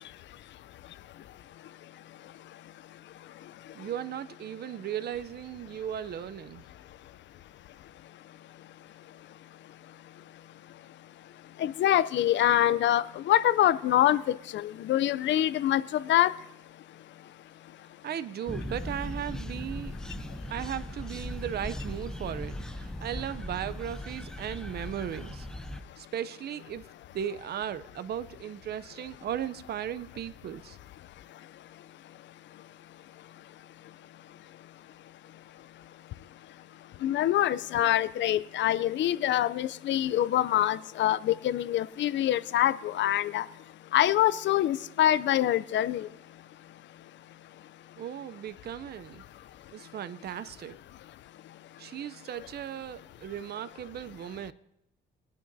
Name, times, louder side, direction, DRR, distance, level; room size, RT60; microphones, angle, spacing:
voice 1, 3.7-6.6 18.0-20.0 20.5-25.5 26.0-26.9 27.1-30.8 48.0-49.2 49.7-50.8 51.8-54.5, right 10 dB, 55° right, 0.6 m, -36 dB
voice 2, 11.6-16.3 37.0-43.4 43.9-46.1, left 12 dB, 65° left, 0.5 m, -25 dB
sound 1, 18.5-25.8, left 1 dB, 5° left, 0.6 m, -38 dB
22.0 x 9.3 x 2.7 m
cardioid pair, 90°, 20 cm